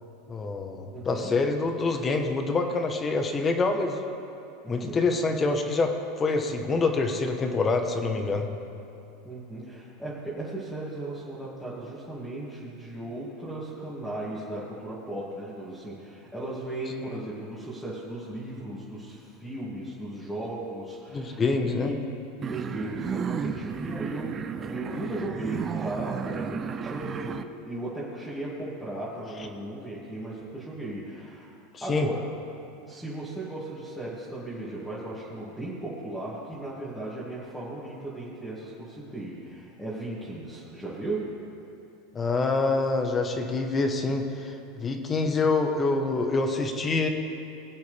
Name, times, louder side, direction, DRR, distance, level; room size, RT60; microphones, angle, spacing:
voice 1, 0.3-4.0 4.7-8.5 21.1-21.9 31.9-32.1 42.1-47.1, left 3 dB, 25° left, 5 dB, 1.3 m, -26 dB
voice 2, 0.9-1.4 4.6-5.0 9.2-21.9 22.5-32.3 32.9-41.3, right 1 dB, ahead, -11 dB, 2.7 m, -36 dB
sound 1, 22.4-27.4, right 6 dB, 30° right, 0.5 m, -33 dB
21.0 x 8.1 x 3.6 m, 2.8 s
supercardioid pair, 110°, 0 cm